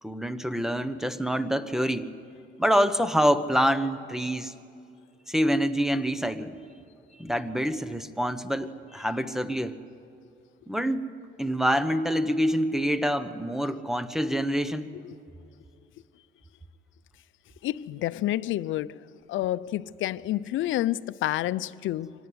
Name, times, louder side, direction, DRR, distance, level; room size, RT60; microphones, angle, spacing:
voice 1, 0.0-2.1 2.6-4.5 5.3-6.6 7.1-9.8 10.7-11.0 11.4-14.9, equal, ahead, 1.2 m, -26 dB
voice 2, 17.6-19.0 19.3-22.1, left 14 dB, 80° left, 0.6 m, -29 dB
25.0 x 18.5 x 9.7 m
cardioid pair, 90°, 20 cm